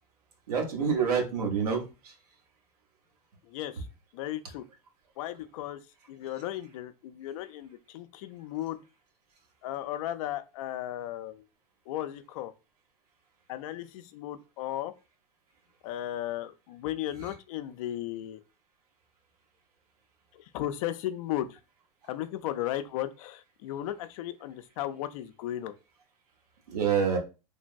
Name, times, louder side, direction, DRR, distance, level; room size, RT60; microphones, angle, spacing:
voice 1, 0.5-2.1 26.7-27.2, right 6 dB, 85° right, 1.0 m, -27 dB
voice 2, 3.4-3.9 4.1-4.6 5.2-5.8 6.1-8.8 9.6-11.4 11.9-12.5 13.5-14.9 15.8-18.4 20.3-21.6 22.1-25.8, left 13 dB, 60° left, 0.4 m, -35 dB
3.3 x 2.2 x 2.5 m
hypercardioid pair, 105°, 19 cm